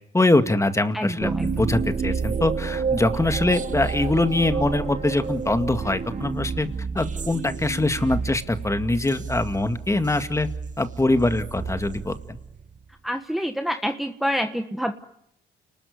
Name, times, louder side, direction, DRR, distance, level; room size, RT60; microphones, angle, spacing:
voice 1, 0.1-1.3 1.6-6.7 6.9-10.5 10.8-12.4, left 2 dB, 15° left, 9 dB, 2.1 m, -23 dB
voice 2, 0.9-1.5 13.0-14.9, equal, ahead, 6 dB, 1.4 m, -27 dB
sound 1, 1.2-12.8, right 5 dB, 40° right, 1.5 m, -30 dB
29.5 x 20.0 x 9.7 m, 0.77 s
cardioid pair, 90°, 20 cm